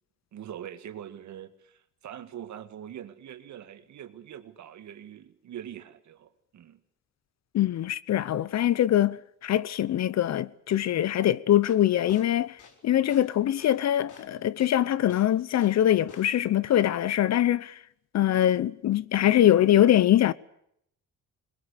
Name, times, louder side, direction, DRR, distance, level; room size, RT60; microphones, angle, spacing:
voice 1, 0.3-6.8, right 10 dB, 70° right, 1.9 m, -43 dB
voice 2, 7.5-12.6 12.8-17.8 18.1-20.3, left 12 dB, 60° left, 0.9 m, -23 dB
sound 1, 11.5-15.8 16.1-16.5, left 5 dB, 80° left, 4.5 m, -51 dB
21.5 x 20.5 x 8.3 m
cardioid pair, 90°, 30 cm